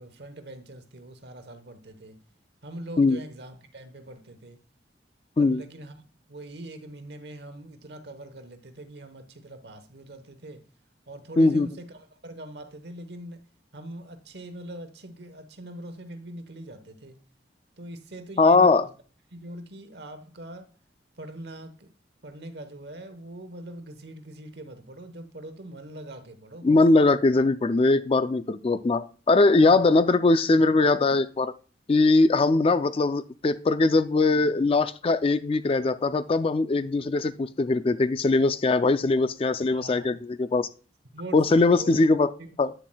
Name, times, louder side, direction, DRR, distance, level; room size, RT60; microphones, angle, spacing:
voice 1, 0.0-2.2 2.6-4.6 5.4-5.9 6.3-10.6 11.1-13.4 13.7-17.2 17.8-18.9 19.3-20.7 21.2-21.9 22.2-26.8 39.7-40.2 41.1-41.9 42.4-42.6, right 1 dB, 65° right, 1.1 m, -42 dB
voice 2, 11.4-11.7 18.4-18.8 26.6-31.5 31.9-40.7 41.3-42.3 42.6-42.7, left 3 dB, 30° left, 0.3 m, -21 dB
9.1 x 7.3 x 2.3 m
head